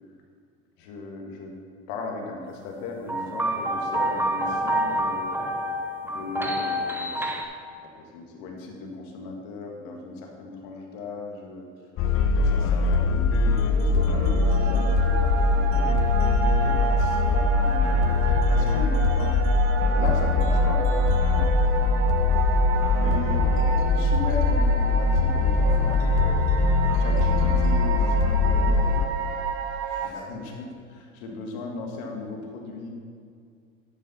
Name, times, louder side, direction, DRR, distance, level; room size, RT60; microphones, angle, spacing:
voice 1, 0.8-1.6 1.9-5.4 6.1-7.6 7.9-11.7 12.3-16.2 16.6-19.3 19.9-20.9 21.3-21.5 22.9-26.4 27.0-29.1 29.9-32.9, left 3 dB, 60° left, 1 dB, 1.8 m, -37 dB
sound 1, 3.1-7.5, right 1 dB, 5° right, 0.8 m, -27 dB
sound 2, 12.0-29.1, left 3 dB, 35° left, 0.7 m, -22 dB
sound 3, 13.6-30.1, right 7 dB, 65° right, 0.9 m, -31 dB
12.0 x 5.4 x 4.2 m, 2.2 s
hypercardioid pair, 95°, 38 cm